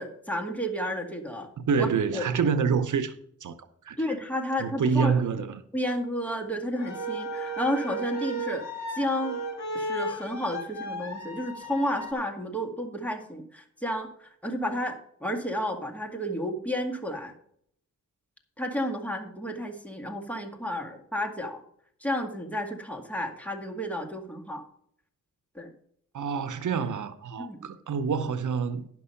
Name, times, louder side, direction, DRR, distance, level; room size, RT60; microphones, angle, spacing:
voice 1, 0.0-1.5 1.8-1.9 2.1-2.3 4.0-5.4 5.7-9.4 9.7-17.3 18.6-21.6 22.0-24.6 25.6-25.7 27.4-27.6, equal, 5° left, 1.9 m, -31 dB
voice 2, 1.6-3.1 3.4-3.5 3.9-4.0 4.6-5.6 26.1-28.9, right 6 dB, 85° right, 0.7 m, -27 dB
sound 1, 6.7-12.1, right 1 dB, 65° left, 1.8 m, -34 dB
10.5 x 6.0 x 5.7 m
wide cardioid pair, 70°, 30 cm